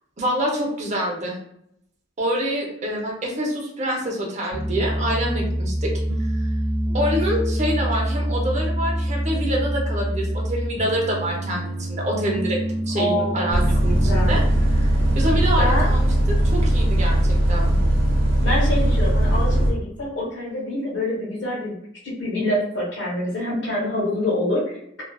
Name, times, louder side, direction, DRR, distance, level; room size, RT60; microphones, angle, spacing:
voice 1, 0.2-1.4 2.2-5.9 6.4-6.5 6.9-12.6 12.9-14.4 14.7-14.9 15.1-16.1 16.4-17.8, equal, 35° right, -1 dB, 0.6 m, -26 dB
Piano, 4.5-17.0, right 1 dB, 15° right, 0.9 m, -27 dB
voice 2, 12.9-13.8 14.0-14.4 15.6-16.0 18.4-21.8 22.0-25.0, left 1 dB, 85° left, -8 dB, 1.0 m, -26 dB
Bus, 13.5-19.7, right 1 dB, 80° right, 0.7 m, -19 dB
2.3 x 2.3 x 2.3 m, 0.72 s
head